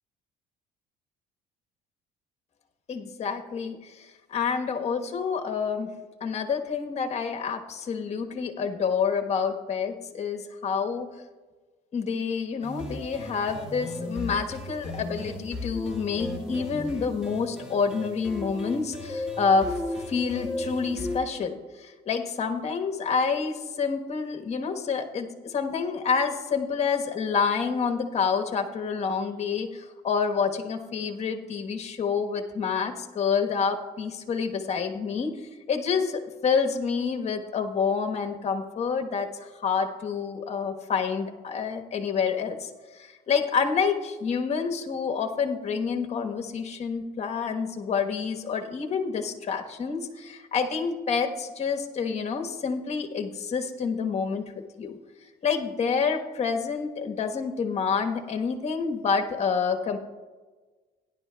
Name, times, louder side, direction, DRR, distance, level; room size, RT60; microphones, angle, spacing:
voice 1, 2.9-5.9 6.2-11.1 11.9-19.7 20.1-39.3 39.5-54.4 54.8-55.0 55.4-60.0, left 5 dB, 40° left, 4 dB, 1.2 m, -28 dB
sound 1, 12.6-21.2, left 2 dB, 5° right, 1.8 m, -35 dB
17.0 x 10.5 x 2.3 m, 1.3 s
cardioid pair, 110°, 17 cm